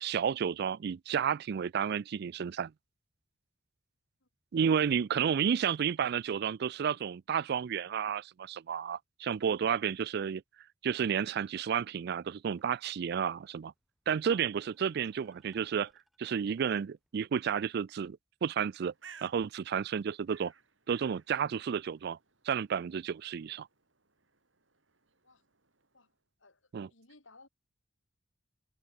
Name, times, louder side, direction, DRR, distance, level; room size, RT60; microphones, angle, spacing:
voice 1, 0.0-2.7 4.5-10.4 10.8-13.7 14.1-15.9 16.2-18.9 19.2-20.5 20.9-22.2 22.5-23.7 26.7-26.9, right 7 dB, 55° right, 0.4 m, -31 dB
sound 1, 12.7-17.6, equal, ahead, 4.5 m, -67 dB
Bird, 18.6-26.2, right 6 dB, 80° right, 7.0 m, -59 dB
voice 2, 26.4-27.5, left 3 dB, 85° left, 5.9 m, -59 dB
head